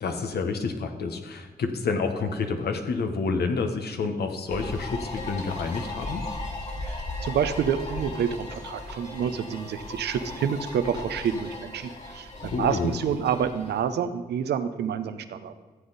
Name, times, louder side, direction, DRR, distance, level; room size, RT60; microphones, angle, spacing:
voice 1, 0.0-6.2 12.4-13.0, left 4 dB, 75° left, 6 dB, 1.2 m, -29 dB
sound 1, 4.5-13.8, left 2 dB, 40° left, 3.0 m, -37 dB
voice 2, 6.8-15.5, right 8 dB, 85° right, 10 dB, 0.7 m, -28 dB
14.5 x 7.9 x 4.1 m, 1.4 s
supercardioid pair, 45°, 17 cm